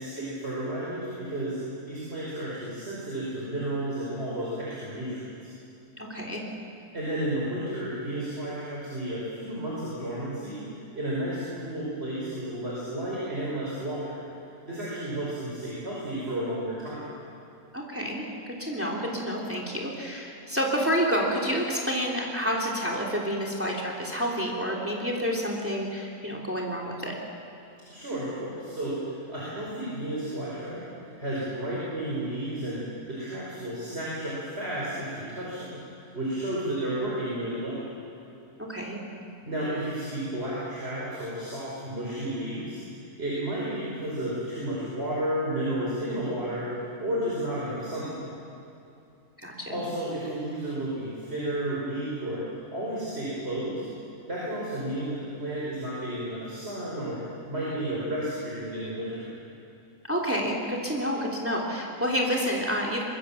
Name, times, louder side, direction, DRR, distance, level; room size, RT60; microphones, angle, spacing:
voice 1, 0.0-1.6 1.9-5.5 6.9-14.2 14.7-17.0 27.9-30.8 31.2-37.8 39.4-42.8 43.2-46.7 47.0-48.2 49.7-52.4 52.7-53.8 54.3-57.2 57.5-59.3, right 1 dB, 40° right, -6 dB, 5.5 m, -32 dB
voice 2, 6.0-6.4 17.7-18.3 18.6-27.2 38.6-39.0 49.4-49.8 60.0-63.1, equal, 10° right, -2 dB, 3.2 m, -29 dB
24.0 x 22.0 x 7.3 m, 2.7 s
omnidirectional pair, 1.6 m